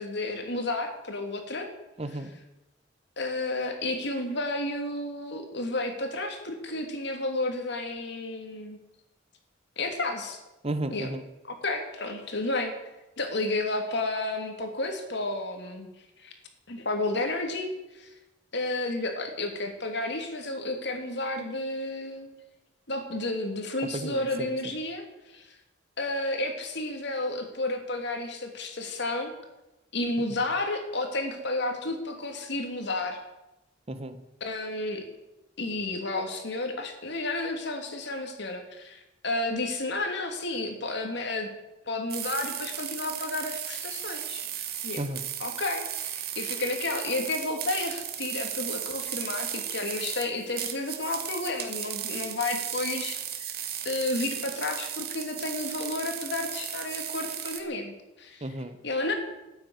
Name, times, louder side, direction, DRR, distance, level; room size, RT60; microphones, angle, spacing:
voice 1, 0.0-1.7 3.2-8.8 9.8-10.4 10.9-11.1 11.4-12.7 13.2-15.9 16.2-16.3 16.7-18.1 18.5-22.3 22.9-25.0 25.3-25.5 26.0-29.3 29.9-33.2 34.4-35.0 35.6-41.5 41.9-45.0 45.4-53.5 53.8-58.5 58.8-59.1, left 2 dB, 65° left, 4 dB, 2.8 m, -31 dB
voice 2, 2.0-2.3 10.6-11.2 23.9-24.5 33.9-34.2 45.0-45.2 58.4-58.8, right 1 dB, 35° right, 11 dB, 1.2 m, -33 dB
sound 1, 42.1-57.6, right 10 dB, 55° right, 1.9 m, -35 dB
13.5 x 9.5 x 9.7 m, 0.96 s
head